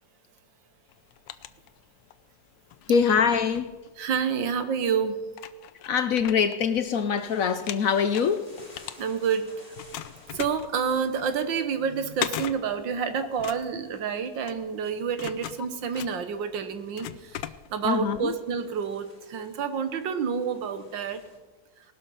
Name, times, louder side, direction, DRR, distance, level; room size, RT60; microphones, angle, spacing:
sound 1, 0.9-2.2 2.7-4.4 4.9-5.0 5.3-7.2 7.5-9.4 9.8-18.0, left 12 dB, 80° left, 1.4 m, -39 dB
voice 1, 2.9-3.7 5.9-8.5 17.8-18.3, left 6 dB, 60° left, 0.9 m, -24 dB
voice 2, 4.0-5.2 9.0-9.5 10.3-21.2, right 6 dB, 85° right, 1.8 m, -29 dB
sound 2, 7.2-21.4, left 2 dB, 30° left, 3.3 m, -56 dB
18.5 x 12.5 x 5.6 m
omnidirectional pair, 2.0 m